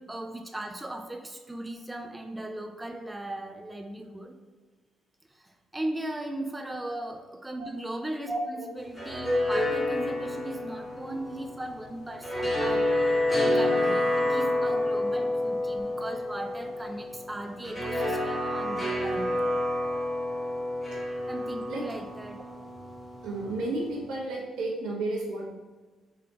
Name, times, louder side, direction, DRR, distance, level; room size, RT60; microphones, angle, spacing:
voice 1, 0.0-4.3 5.3-19.3 21.3-22.4, right 1 dB, 10° right, 4 dB, 0.4 m, -37 dB
sound 1, 8.8-24.0, left 1 dB, 10° left, 1.5 m, -29 dB
voice 2, 23.2-25.5, right 2 dB, 85° right, -3 dB, 1.0 m, -32 dB
3.8 x 3.3 x 2.9 m, 1.3 s
cardioid pair, 90°, 0 cm